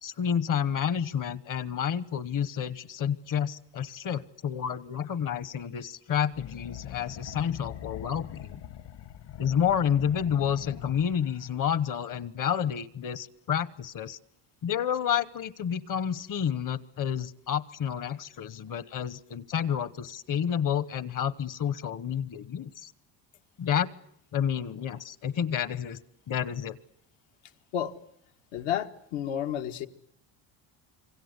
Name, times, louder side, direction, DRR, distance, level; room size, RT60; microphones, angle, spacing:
voice 1, 0.0-8.6 9.4-14.2 14.6-22.9 23.6-23.9 24.3-26.0 26.3-26.8, left 8 dB, 45° left, 18 dB, 1.1 m, -30 dB
sound 1, 6.3-11.5, left 10 dB, 65° left, 2.4 m, -43 dB
voice 2, 28.5-29.9, left 10 dB, 80° left, 6 dB, 1.9 m, -31 dB
27.0 x 25.0 x 8.2 m, 0.68 s
cardioid pair, 160°, 45 cm